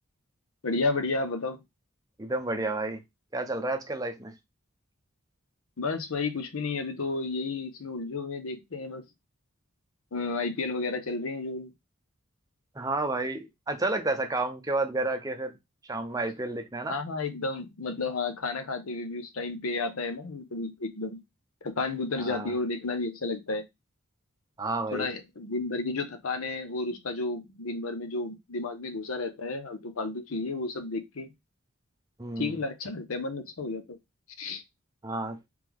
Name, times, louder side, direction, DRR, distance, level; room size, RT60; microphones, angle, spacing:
voice 1, 0.6-1.6 5.8-9.0 10.1-11.7 16.9-21.2 21.6-23.6 24.9-31.3 32.4-34.0 34.4-34.6, left 3 dB, 85° left, 0.8 m, -32 dB
voice 2, 2.2-3.0 3.3-4.3 12.8-15.5 15.9-17.0 22.2-22.5 24.6-25.1 32.2-32.6 35.0-35.4, right 2 dB, 15° right, 0.5 m, -31 dB
3.4 x 3.3 x 3.4 m
head